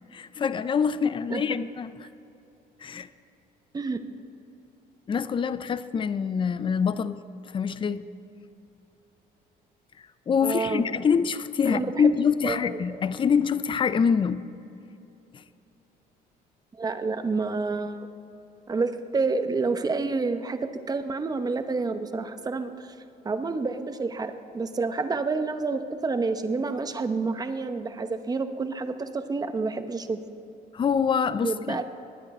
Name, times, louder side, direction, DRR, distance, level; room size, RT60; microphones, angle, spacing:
voice 1, 0.1-1.9 2.8-3.1 5.1-7.2 7.5-8.1 10.3-14.4 15.3-15.4 30.7-31.8, left 6 dB, 30° left, 14 dB, 0.5 m, -25 dB
voice 2, 10.4-10.8 11.7-11.9 12.4-12.7 16.8-18.0 18.7-22.9 23.2-30.2 31.4-31.8, right 4 dB, 20° right, 9 dB, 0.9 m, -29 dB
19.5 x 9.8 x 4.3 m, 2.9 s
cardioid pair, 110°, 17 cm